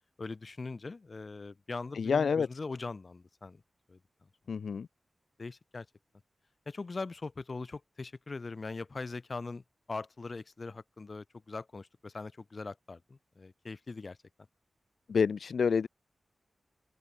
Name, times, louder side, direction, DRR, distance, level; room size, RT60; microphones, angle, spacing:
voice 1, 0.2-3.6 3.9-4.3 5.4-5.9 6.7-9.6 9.9-14.2, left 3 dB, 45° left, 5.5 m, -41 dB
voice 2, 2.0-2.5 4.5-4.9 15.1-15.9, left 6 dB, 85° left, 1.5 m, -28 dB
open air
wide cardioid pair, 80°, 0 cm